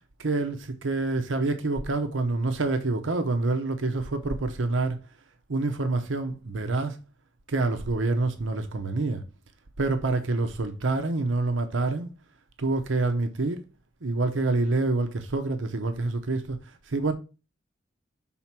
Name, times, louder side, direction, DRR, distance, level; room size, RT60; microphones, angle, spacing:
voice 1, 0.2-5.0 5.5-7.0 7.5-9.2 9.8-12.1 12.6-13.6 14.0-17.1, right 3 dB, 85° right, 0.8 m, -27 dB
5.8 x 3.9 x 5.9 m
head